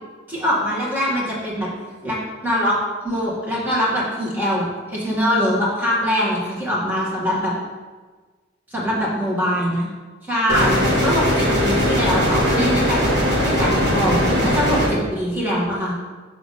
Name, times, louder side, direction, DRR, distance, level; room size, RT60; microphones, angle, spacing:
voice 1, 0.3-1.7 2.0-2.2 2.4-2.7 3.0-7.5 8.7-9.9 10.2-13.1 13.4-15.9, equal, 10° right, -7 dB, 1.8 m, -22 dB
sound 1, 10.5-14.9, equal, 65° right, 1.5 m, -19 dB
6.4 x 3.7 x 5.6 m, 1.4 s
head